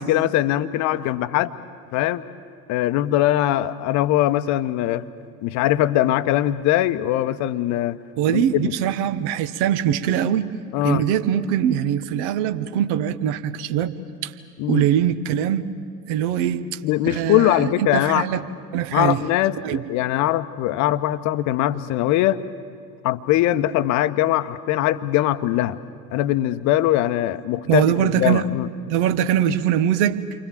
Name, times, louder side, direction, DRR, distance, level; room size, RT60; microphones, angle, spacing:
voice 1, 0.0-1.6 1.9-2.2 2.7-5.1 5.4-8.0 8.3-8.7 10.7-11.0 14.6-14.9 16.8-18.3 18.9-22.4 23.0-25.8 26.1-28.7, left 14 dB, 35° left, 13 dB, 1.0 m, -21 dB
voice 2, 8.2-10.5 10.8-13.9 14.2-14.3 14.7-15.7 16.1-16.8 17.1-18.4 18.7-19.2 19.6-19.8 27.7-28.4 28.9-30.2, right 10 dB, 45° right, 12 dB, 1.4 m, -22 dB
29.5 x 24.5 x 7.6 m, 2.2 s
figure-of-eight pair, 80°, 47 cm